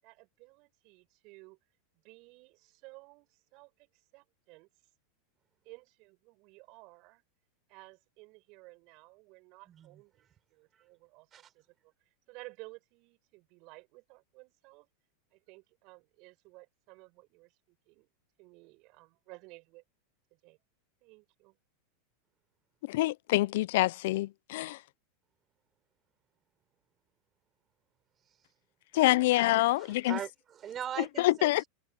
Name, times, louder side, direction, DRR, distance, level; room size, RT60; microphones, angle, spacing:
voice 1, 0.0-4.7 5.6-7.2 7.7-14.9 15.3-18.1 18.4-19.8 20.3-20.6 21.0-21.6, right 25 dB, 55° right, 7.6 m, -55 dB
voice 2, 9.7-10.0 11.3-11.5 29.8-31.7, right 9 dB, 30° right, 6.5 m, -40 dB
voice 3, 22.9-24.8 28.9-30.2 31.2-31.6, left 18 dB, 70° left, 0.5 m, -26 dB
hypercardioid pair, 105°, 0 cm